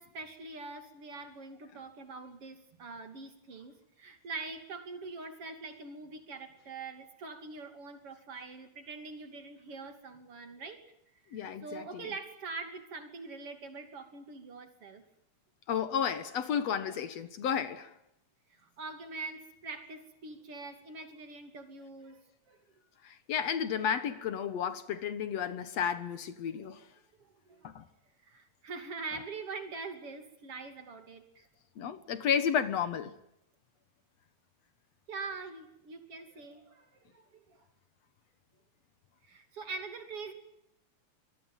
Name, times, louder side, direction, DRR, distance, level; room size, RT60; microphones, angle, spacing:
voice 1, 0.0-10.8 11.2-15.0 16.9-17.0 18.5-22.6 26.4-26.8 27.2-27.8 28.2-31.5 35.1-37.7 39.2-40.3, right 4 dB, 50° right, 3.6 m, -44 dB
voice 2, 11.3-12.1 15.7-18.0 23.0-26.8 27.6-27.8 31.8-33.1, left 8 dB, 65° left, 2.3 m, -32 dB
25.0 x 22.5 x 7.4 m
omnidirectional pair, 3.4 m